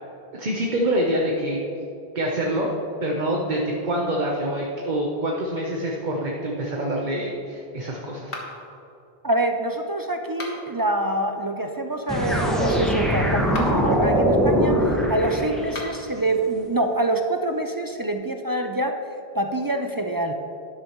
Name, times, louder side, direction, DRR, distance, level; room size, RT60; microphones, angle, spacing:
voice 1, 0.3-1.6 2.1-2.7 3.0-8.4, right 1 dB, 50° right, -1 dB, 1.0 m, -26 dB
sound 1, 8.3-8.8 10.2-10.8 13.4-13.9 15.6-16.1, left 2 dB, 65° left, 1.7 m, -37 dB
voice 2, 9.2-18.9 19.3-20.3, right 1 dB, 30° right, 5 dB, 0.4 m, -26 dB
sound 2, 12.1-16.0, equal, ahead, 1.6 m, -22 dB
12.5 x 11.0 x 3.1 m, 3.0 s
omnidirectional pair, 1.0 m